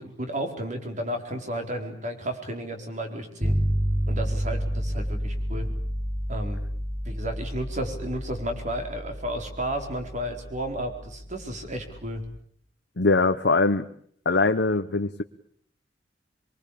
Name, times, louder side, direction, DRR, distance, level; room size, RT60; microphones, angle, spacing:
voice 1, 0.0-3.6 4.1-5.7 6.3-6.6 7.0-12.2, right 1 dB, 40° right, 5 dB, 4.4 m, -32 dB
sound 1, 3.4-12.4, equal, 15° right, 3.5 m, -30 dB
voice 2, 13.0-13.8 14.2-15.2, left 3 dB, 65° left, 6 dB, 1.0 m, -22 dB
25.0 x 23.0 x 8.6 m, 0.62 s
head